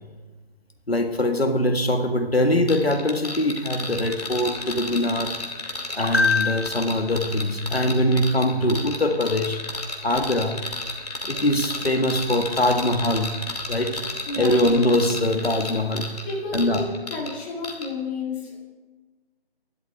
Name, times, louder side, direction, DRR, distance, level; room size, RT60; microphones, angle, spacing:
voice 1, 0.9-5.3 5.9-9.6 10.0-10.6 11.2-13.4 13.7-14.0 14.4-16.1 16.5-16.9, left 1 dB, 75° left, 5 dB, 1.7 m, -22 dB
sound 1, 2.7-17.3 17.6-17.9, left 2 dB, 40° left, 2.3 m, -32 dB
voice 2, 14.3-14.8 16.3-18.6, left 3 dB, 10° left, -4 dB, 2.2 m, -31 dB
22.0 x 12.0 x 3.5 m, 1.2 s
figure-of-eight pair, 155°, 30 cm